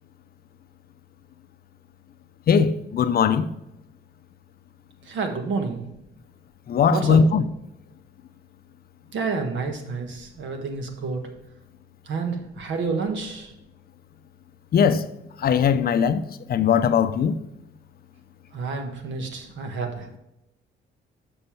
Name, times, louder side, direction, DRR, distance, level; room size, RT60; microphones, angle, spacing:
voice 1, 2.5-3.5 6.7-7.4 14.7-15.1 15.4-16.2 16.5-17.4, left 6 dB, 50° left, 0.5 m, -19 dB
voice 2, 5.0-5.8 6.9-7.3 9.1-11.2 12.1-13.5 18.5-20.1, right 4 dB, 70° right, 1.4 m, -29 dB
6.8 x 5.4 x 4.4 m
cardioid pair, 90°, 20 cm